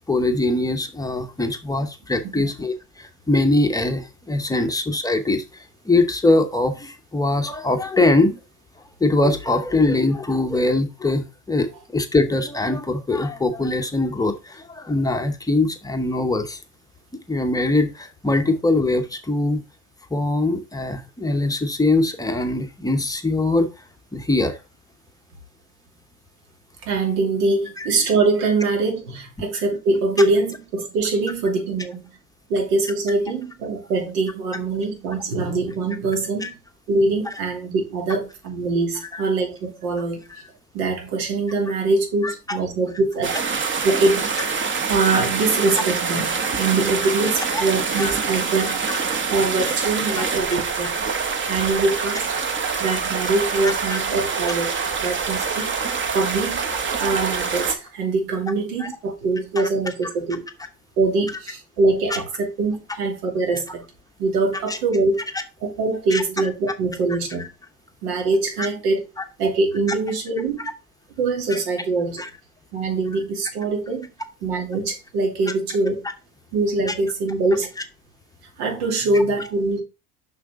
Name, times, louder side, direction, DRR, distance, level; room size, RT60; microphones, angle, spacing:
voice 1, 0.1-8.4 9.0-16.6 17.3-19.6 20.1-23.7 24.1-24.6 27.8-27.9 36.4-36.5 39.1-39.2 40.3-40.5 42.2-42.6 47.5-47.6 48.0-48.1 48.9-49.0 53.6-54.0 54.8-54.9 58.8-58.9 64.7-64.8 66.1-66.2 68.6-68.7 69.2-69.3 71.5-71.6 72.2-72.3 76.9-77.0, left 2 dB, 10° left, 0.8 m, -22 dB
voice 2, 26.8-32.0 32.5-36.6 36.9-40.2 40.7-43.4 43.8-44.6 44.9-49.0 49.3-50.9 51.5-52.3 52.8-55.8 56.1-60.4 61.0-63.8 64.2-65.3 65.6-67.5 68.0-69.0 69.4-70.7 71.2-72.2 72.7-74.1 74.4-76.1 76.5-77.7 78.6-79.8, right 3 dB, 75° right, 2.8 m, -23 dB
sound 1, 43.2-57.8, right 5 dB, 25° right, 1.0 m, -25 dB
6.6 x 5.9 x 3.6 m
supercardioid pair, 105°, 46 cm